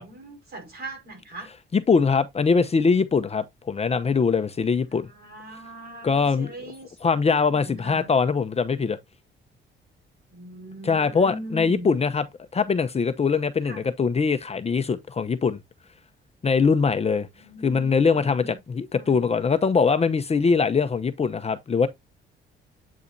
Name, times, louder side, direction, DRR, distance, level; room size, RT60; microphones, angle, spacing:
voice 1, 0.0-1.5 4.9-8.1 10.3-11.9 13.6-13.9 17.3-18.6 18.9-19.2, right 1 dB, 55° right, 5.3 m, -41 dB
voice 2, 1.7-5.1 6.0-6.5 7.0-9.0 10.8-12.2 12.5-15.6 16.4-17.3 17.6-18.4 18.8-21.9, left 5 dB, 30° left, 0.8 m, -22 dB
8.4 x 4.8 x 2.7 m
cardioid pair, 90°, 20 cm